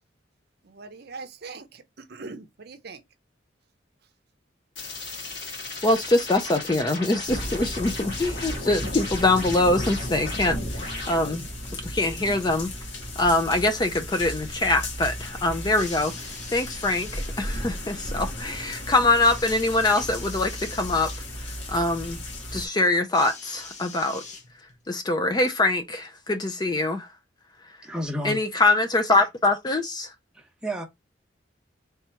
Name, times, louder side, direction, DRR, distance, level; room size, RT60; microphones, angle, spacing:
voice 1, 0.6-3.0, right 4 dB, 55° right, 0.6 m, -41 dB
sound 1, 4.8-11.5, left 3 dB, 65° left, 1.9 m, -36 dB
voice 2, 5.8-11.4 11.7-12.7 13.2-21.1 21.7-22.2 22.5-24.2 24.9-27.1 28.2-30.1, left 2 dB, 20° left, 0.4 m, -24 dB
sound 2, 7.3-22.7, left 1 dB, 80° left, 1.6 m, -35 dB
sound 3, 15.7-17.3 19.2-21.3 23.1-24.8 25.8-25.9, left 4 dB, 40° left, 0.9 m, -42 dB
voice 3, 27.8-28.6 30.3-30.8, equal, 5° right, 0.9 m, -32 dB
3.5 x 2.8 x 4.3 m
head